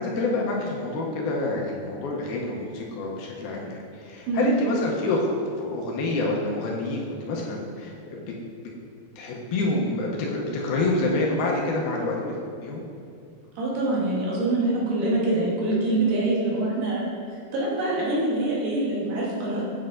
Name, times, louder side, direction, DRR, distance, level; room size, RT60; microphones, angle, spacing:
voice 1, 0.0-5.3 5.6-8.2 9.2-12.3 12.6-12.8, left 2 dB, 80° left, -2 dB, 2.5 m, -27 dB
voice 2, 13.6-17.1 17.5-19.6, right 2 dB, 70° right, -5 dB, 2.7 m, -25 dB
7.7 x 7.6 x 2.5 m, 2.4 s
omnidirectional pair, 4.5 m